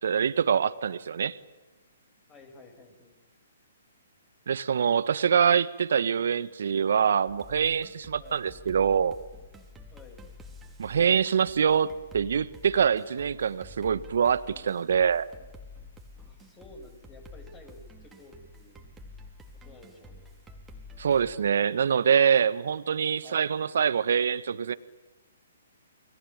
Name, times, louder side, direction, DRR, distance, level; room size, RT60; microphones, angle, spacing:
voice 1, 0.0-1.4 4.5-9.1 10.8-15.3 21.0-24.7, right 7 dB, 65° right, 15 dB, 1.6 m, -25 dB
voice 2, 2.3-3.2 8.2-8.5 9.9-10.2 16.1-18.8 19.5-20.4 23.2-23.5, left 2 dB, 20° left, 6 dB, 7.3 m, -52 dB
sound 1, 7.3-21.4, left 2 dB, 10° right, 4.1 m, -49 dB
29.5 x 22.5 x 8.9 m, 1.1 s
figure-of-eight pair, 130°, 0 cm